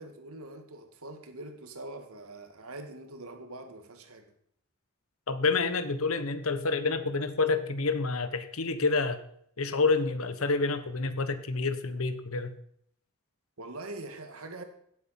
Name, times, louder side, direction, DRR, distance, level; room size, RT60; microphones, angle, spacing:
voice 1, 0.0-4.3 13.6-14.6, right 2 dB, 85° right, 2.0 m, -43 dB
voice 2, 5.3-9.2 9.6-12.6, left 3 dB, 80° left, 1.2 m, -28 dB
17.0 x 7.8 x 5.8 m
head